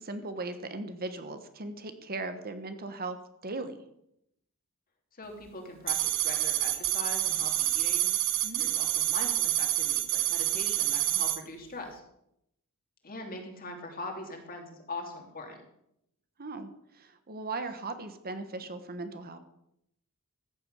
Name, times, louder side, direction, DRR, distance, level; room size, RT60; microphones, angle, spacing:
voice 1, 0.0-3.2 3.4-3.8 8.4-8.6 16.4-19.4, right 3 dB, 45° right, 9 dB, 1.2 m, -38 dB
voice 2, 5.1-8.1 8.6-12.0 13.0-15.6, left 2 dB, 40° left, 3 dB, 3.0 m, -42 dB
sound 1, 5.9-11.4, right 13 dB, 65° right, 1.1 m, -28 dB
14.5 x 7.9 x 8.0 m, 0.78 s
head